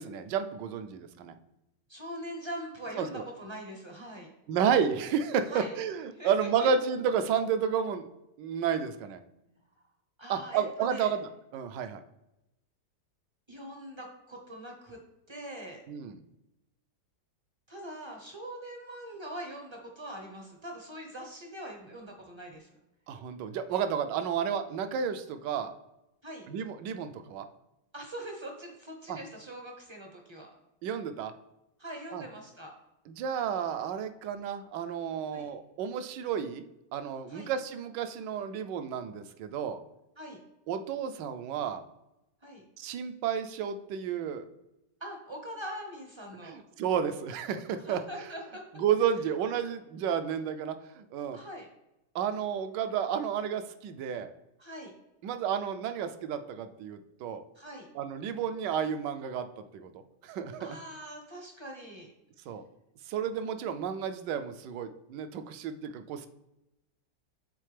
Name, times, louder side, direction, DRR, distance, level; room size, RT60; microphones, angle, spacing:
voice 1, 0.0-1.3 3.0-3.2 4.5-8.1 8.4-9.2 10.3-11.2 11.5-12.0 15.9-16.2 23.1-25.7 26.5-27.4 29.1-29.2 30.8-31.3 32.1-32.2 33.1-36.6 36.9-39.8 40.7-41.8 42.8-44.5 46.4-48.0 48.8-51.4 52.1-54.3 55.2-57.4 57.9-59.9 60.2-60.7 62.5-62.6 63.1-66.3, right 7 dB, 80° right, 9 dB, 1.2 m, -31 dB
voice 2, 1.9-4.3 5.5-5.7 6.1-6.5 9.5-9.6 10.2-11.1 13.5-15.0 15.3-15.8 17.7-22.7 26.2-26.5 27.9-30.5 31.8-32.7 35.3-35.5 37.3-37.5 40.2-40.4 42.4-42.6 45.0-46.6 47.7-48.6 51.3-51.7 54.6-54.9 57.5-57.9 60.6-62.1, right 1 dB, 40° right, 2 dB, 0.4 m, -42 dB
7.6 x 3.8 x 3.3 m, 0.92 s
omnidirectional pair, 1.9 m